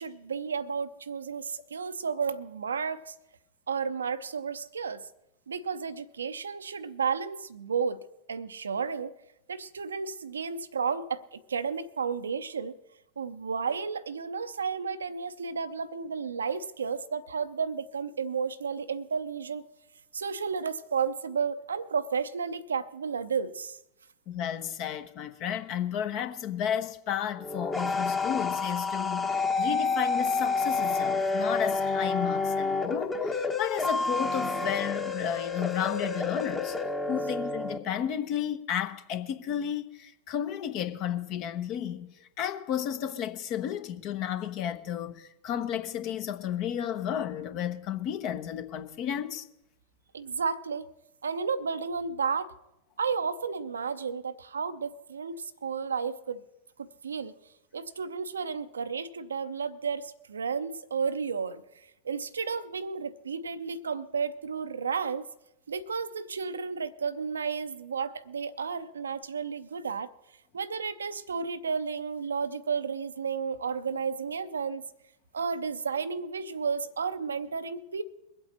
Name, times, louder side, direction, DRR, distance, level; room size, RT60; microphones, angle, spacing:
voice 1, 0.0-3.1 3.7-5.0 5.5-8.0 8.3-9.1 9.5-12.8 13.2-19.6 20.1-23.8 50.1-50.9 51.2-52.5 53.0-56.4 56.8-57.3 57.7-61.6 62.0-65.3 65.7-70.1 70.5-74.8 75.3-78.0, right 5 dB, 70° right, 0.6 m, -32 dB
voice 2, 24.3-36.8 37.1-49.4, left 9 dB, 40° left, 1.0 m, -32 dB
sound 1, 27.4-37.8, left 4 dB, 15° left, 1.1 m, -29 dB
22.5 x 8.1 x 4.3 m
figure-of-eight pair, 90°, 0 cm